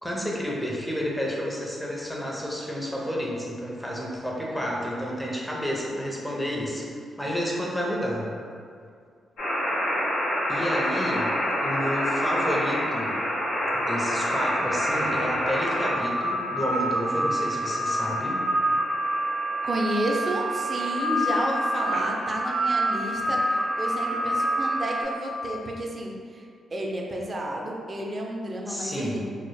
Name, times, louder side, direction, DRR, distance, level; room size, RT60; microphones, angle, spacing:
voice 1, 0.0-6.9 7.2-8.3 10.5-11.3 11.6-13.2 13.7-18.4 28.7-29.2, equal, 5° left, -3 dB, 0.6 m, -30 dB
sound 1, 9.4-25.0, equal, 80° left, 0.7 m, -27 dB
voice 2, 19.6-26.4 26.7-29.2, right 1 dB, 45° right, -1 dB, 0.4 m, -31 dB
2.0 x 2.0 x 3.1 m, 2.2 s
supercardioid pair, 50°, 0 cm